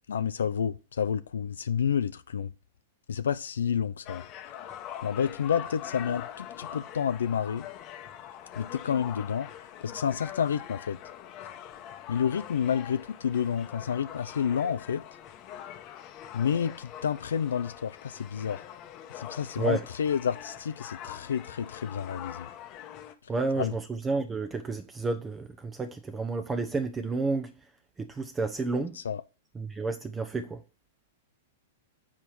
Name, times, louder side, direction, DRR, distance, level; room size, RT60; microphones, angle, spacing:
voice 1, 0.1-2.5 3.1-4.2 5.0-7.7 8.6-9.5 9.8-11.0 12.1-15.0 16.3-18.6 19.1-22.5 23.6-23.7 29.0-29.2, left 8 dB, 80° left, 0.4 m, -29 dB
sound 1, 4.1-23.1, left 10 dB, 40° left, 0.9 m, -43 dB
voice 2, 23.3-27.5 28.0-29.0 29.5-30.6, right 3 dB, 15° right, 0.8 m, -31 dB
7.2 x 4.2 x 4.7 m
hypercardioid pair, 115°, 0 cm